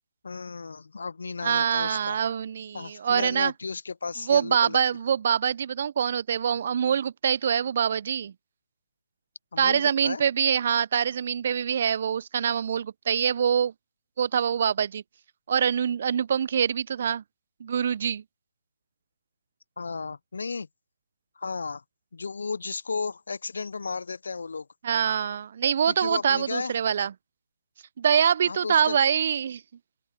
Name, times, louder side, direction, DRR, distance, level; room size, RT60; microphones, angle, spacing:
voice 1, 0.2-2.2 2.7-4.8 9.5-10.2 19.8-20.7 21.4-21.8 22.1-24.7 25.8-26.7 28.4-29.0, left 4 dB, 65° left, 0.5 m, -34 dB
voice 2, 1.4-3.5 4.3-8.3 9.6-13.7 14.2-15.0 15.5-17.2 17.6-18.2 24.8-27.1 28.0-29.6, right 8 dB, 45° right, 0.6 m, -24 dB
open air
figure-of-eight pair, 145°, 0 cm